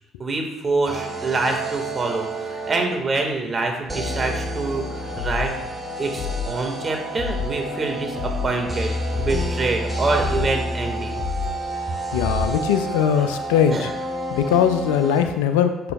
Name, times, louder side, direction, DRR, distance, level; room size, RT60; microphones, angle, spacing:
voice 1, 0.2-5.7 6.0-8.9 9.2-11.1 13.2-13.3 13.7-13.9, right 3 dB, 30° right, 2 dB, 1.9 m, -26 dB
sound 1, 0.9-3.1 3.9-15.2, right 1 dB, 10° right, 2.0 m, -29 dB
sound 2, 5.1-5.5 6.2-6.6 7.2-7.6 8.2-8.6 9.1-9.5 10.2-10.6 11.2-11.6 12.2-12.6, left 6 dB, 45° left, 2.2 m, -29 dB
voice 2, 12.1-13.9 14.3-15.9, left 8 dB, 75° left, 9 dB, 0.5 m, -20 dB
11.5 x 6.6 x 2.4 m, 0.94 s
figure-of-eight pair, 50°, 0 cm